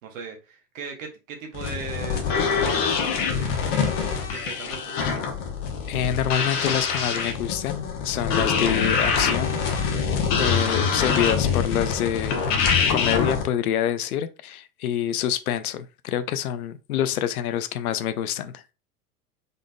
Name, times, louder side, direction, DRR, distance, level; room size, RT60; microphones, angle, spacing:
voice 1, 0.0-4.9, right 4 dB, 55° right, 1.1 m, -39 dB
sound 1, 1.5-13.4, left 6 dB, 35° left, 0.9 m, -24 dB
voice 2, 5.9-10.1 10.4-12.4 12.9-18.6, left 10 dB, 65° left, 0.5 m, -27 dB
3.9 x 3.6 x 2.2 m
figure-of-eight pair, 90°, 47 cm